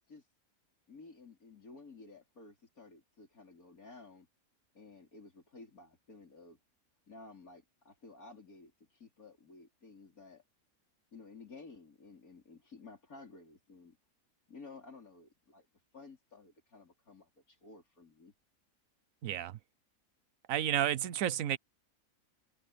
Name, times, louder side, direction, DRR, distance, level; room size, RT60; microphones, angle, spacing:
voice 1, 0.9-4.3 4.7-6.6 7.1-10.4 11.1-14.0 14.5-15.7 15.9-18.3, left 3 dB, 85° left, 5.0 m, -54 dB
voice 2, 19.2-19.6 20.5-21.6, right 11 dB, 70° right, 1.2 m, -31 dB
omnidirectional pair, 1.5 m